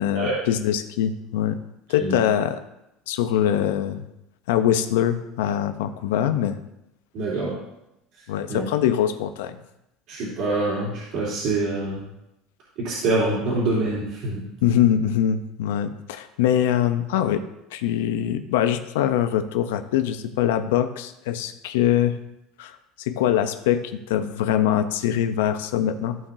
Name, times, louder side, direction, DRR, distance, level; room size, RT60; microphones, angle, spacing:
voice 1, 0.0-1.6 1.9-2.6 3.1-4.0 4.5-6.6 8.3-9.6 14.6-17.4 17.7-22.1 22.6-26.2, left 10 dB, 85° left, 9 dB, 0.7 m, -23 dB
voice 2, 7.1-7.6 8.5-8.6 10.1-12.0 12.8-14.4, right 2 dB, 65° right, -8 dB, 3.3 m, -25 dB
14.5 x 5.7 x 2.7 m, 0.87 s
supercardioid pair, 105°, 0 cm